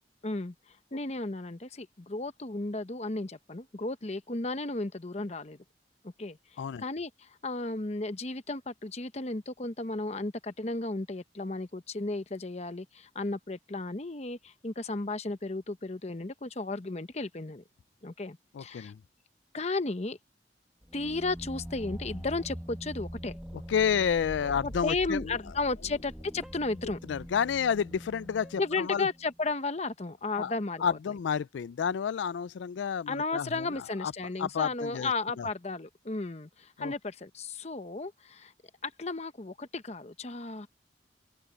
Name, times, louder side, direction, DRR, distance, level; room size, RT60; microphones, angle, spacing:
voice 1, 0.2-0.5 0.9-5.6 6.0-6.4 6.8-17.6 18.0-18.9 19.5-20.2 20.9-23.4 24.6-27.0 28.6-31.0 33.1-38.5 38.8-40.7, left 3 dB, 35° left, 0.9 m, -34 dB
voice 2, 18.5-19.0 23.7-25.4 27.1-29.1 30.4-30.5 30.8-34.1 34.4-35.1 35.4-35.5 36.8-36.9, left 7 dB, 85° left, 0.3 m, -30 dB
sound 1, 20.8-29.4, equal, 5° right, 1.1 m, -43 dB
open air
head